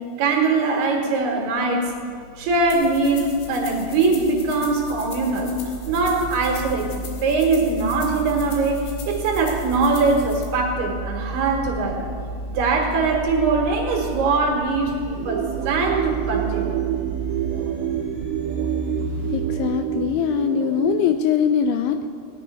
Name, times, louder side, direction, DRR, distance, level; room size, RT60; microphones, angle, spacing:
voice 1, 0.2-1.9 2.4-5.5 5.9-12.1 12.5-16.8, right 3 dB, 65° right, 0 dB, 3.0 m, -22 dB
sound 1, 1.9-19.7, right 2 dB, 40° left, 3.6 m, -33 dB
sound 2, 2.7-10.4, left 5 dB, 70° left, 4.0 m, -42 dB
sound 3, 15.1-21.1, right 10 dB, 80° right, 2.7 m, -27 dB
voice 2, 19.3-22.1, left 8 dB, 85° left, 8 dB, 2.7 m, -22 dB
18.0 x 10.0 x 5.6 m, 2.3 s
omnidirectional pair, 5.7 m